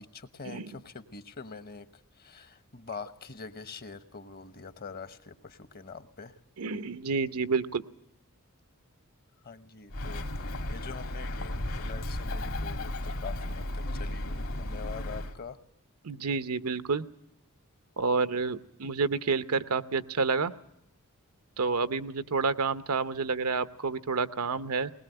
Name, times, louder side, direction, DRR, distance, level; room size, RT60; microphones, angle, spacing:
voice 1, 0.0-1.9 2.2-6.4 9.4-15.6, left 5 dB, 45° left, 12 dB, 1.0 m, -44 dB
voice 2, 6.6-7.8 16.0-17.0 18.0-20.5 21.6-24.9, right 4 dB, 85° right, 12 dB, 0.8 m, -29 dB
Bird, 9.9-15.3, left 1 dB, 70° left, 2.1 m, -34 dB
20.5 x 20.0 x 7.8 m, 0.80 s
head